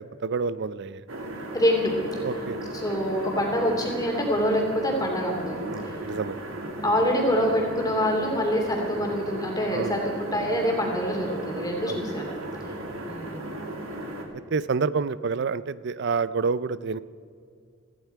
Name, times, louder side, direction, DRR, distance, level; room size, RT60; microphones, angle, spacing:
voice 1, 0.2-1.0 2.2-2.6 5.7-6.4 9.7-10.1 11.9-12.0 12.9-13.0 14.5-17.0, right 5 dB, 55° right, 17 dB, 0.5 m, -28 dB
sound 1, 1.1-14.2, right 1 dB, 85° right, 2.2 m, -36 dB
voice 2, 1.5-2.3 2.7-5.6 6.8-12.4 13.0-13.4, equal, 20° left, 1 dB, 2.8 m, -25 dB
17.5 x 15.0 x 4.7 m, 2.2 s
head